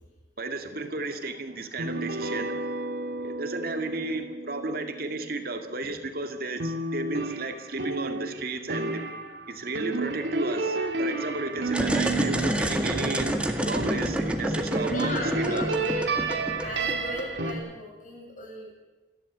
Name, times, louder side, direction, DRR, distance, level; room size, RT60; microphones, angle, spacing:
voice 1, 0.4-2.5 3.2-9.0 9.5-15.2 15.5-15.6, right 2 dB, 60° right, 6 dB, 2.1 m, -33 dB
sound 1, 1.8-6.1 6.6-14.3 14.7-17.5, right 3 dB, 80° right, 2.6 m, -32 dB
sound 2, 11.7-17.5, right 1 dB, 5° right, 1.9 m, -28 dB
voice 2, 14.9-16.1 16.6-18.7, left 1 dB, 50° left, -1 dB, 7.9 m, -36 dB
28.0 x 12.0 x 8.5 m, 1.2 s
head